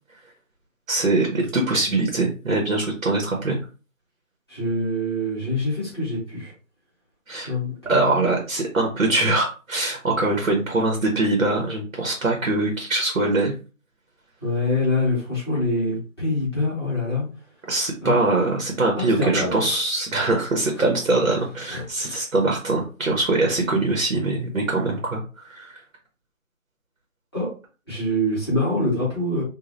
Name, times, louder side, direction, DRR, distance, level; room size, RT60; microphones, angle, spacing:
voice 1, 0.9-3.6 7.3-7.5 7.9-13.5 17.7-25.8, right 2 dB, 70° right, 1 dB, 1.0 m, -23 dB
voice 2, 4.5-6.5 7.3-8.3 14.4-17.2 18.0-18.2 19.0-19.7 20.8-20.9 21.7-22.2 27.3-27.5 27.9-29.4, left 1 dB, 20° left, -10 dB, 1.1 m, -25 dB
3.0 x 2.4 x 2.6 m, 0.34 s
figure-of-eight pair, 170°, 41 cm